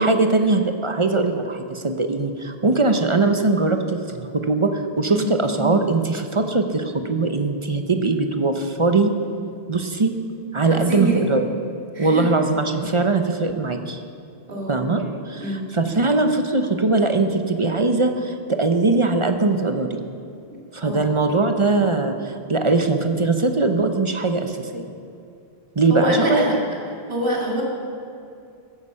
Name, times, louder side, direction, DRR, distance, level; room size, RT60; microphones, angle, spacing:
voice 1, 0.0-9.1 9.7-10.1 10.5-11.5 12.0-14.0 14.7-20.0 20.7-24.9 25.8-26.4, right 3 dB, 30° right, 6 dB, 0.7 m, -21 dB
voice 2, 10.6-11.2 11.9-12.3 14.5-14.9 15.4-15.7 20.8-21.1 25.9-26.6 27.1-27.6, right 1 dB, 55° right, -3 dB, 2.7 m, -25 dB
15.0 x 9.8 x 5.6 m, 2.5 s
omnidirectional pair, 1.1 m